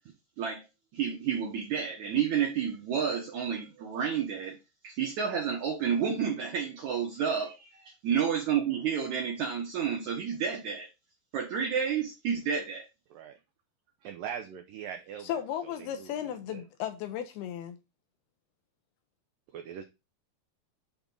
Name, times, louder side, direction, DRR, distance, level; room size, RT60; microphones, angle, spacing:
voice 1, 0.9-4.6 4.8-10.9 11.3-12.9, right 7 dB, 65° right, 1.9 m, -30 dB
voice 2, 14.0-15.3 15.6-15.7 16.0-16.6 19.5-19.8, right 8 dB, 85° right, 1.9 m, -41 dB
voice 3, 15.2-17.8, left 10 dB, 75° left, 2.5 m, -35 dB
8.8 x 3.6 x 5.3 m
omnidirectional pair, 5.0 m